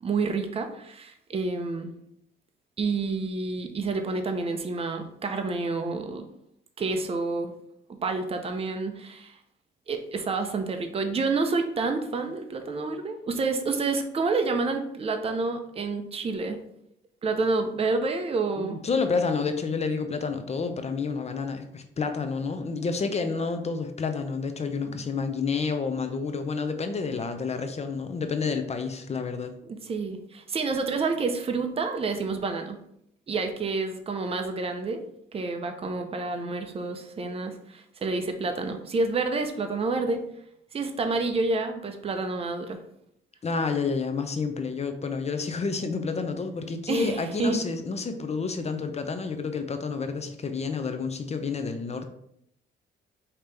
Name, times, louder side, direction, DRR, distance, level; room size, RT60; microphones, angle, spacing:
voice 1, 0.0-1.9 2.8-6.2 6.8-7.5 7.9-9.4 9.9-16.6 17.2-18.8 29.7-32.8 33.3-35.0 35.3-40.2 40.7-42.8 46.9-47.6, right 3 dB, 30° right, 6 dB, 0.6 m, -29 dB
voice 2, 18.6-29.5 43.4-52.0, left 4 dB, 35° left, 7 dB, 0.6 m, -29 dB
5.2 x 2.9 x 3.3 m, 0.72 s
cardioid pair, 90°, 20 cm